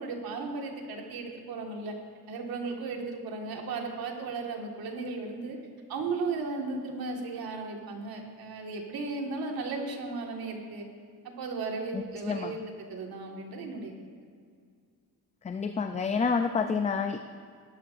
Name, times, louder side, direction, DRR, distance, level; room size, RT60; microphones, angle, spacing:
voice 1, 0.0-1.9 2.3-5.6 5.9-10.8 11.2-13.9, right 3 dB, 90° right, 1 dB, 1.8 m, -35 dB
voice 2, 11.9-12.6 15.4-17.2, left 5 dB, 20° left, 7 dB, 0.3 m, -29 dB
18.5 x 11.5 x 2.5 m, 2.1 s
cardioid pair, 140°, 35 cm